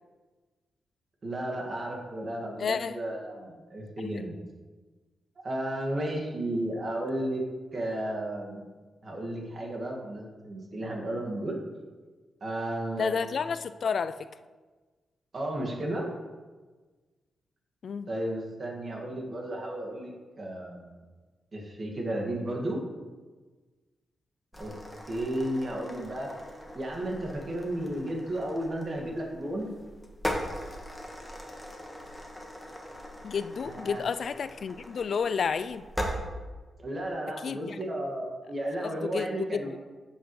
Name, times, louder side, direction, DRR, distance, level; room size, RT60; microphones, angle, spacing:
voice 1, 1.2-4.4 5.4-7.4 7.7-8.7 9.0-11.6 12.4-13.3 15.3-16.1 18.1-20.1 20.4-20.9 21.5-22.8 24.6-24.8 25.1-26.3 26.7-29.7 33.6-34.0 36.8-39.7, right 1 dB, 40° right, 0 dB, 2.0 m, -33 dB
voice 2, 2.6-3.0 4.0-4.1 13.0-14.2 17.8-18.1 33.2-35.8 37.4-37.8 39.1-39.8, left 6 dB, 60° left, 13 dB, 0.3 m, -31 dB
sound 1, 24.5-36.2, equal, 5° left, 1.5 m, -40 dB
10.0 x 8.2 x 3.2 m, 1.3 s
cardioid pair, 115°, 0 cm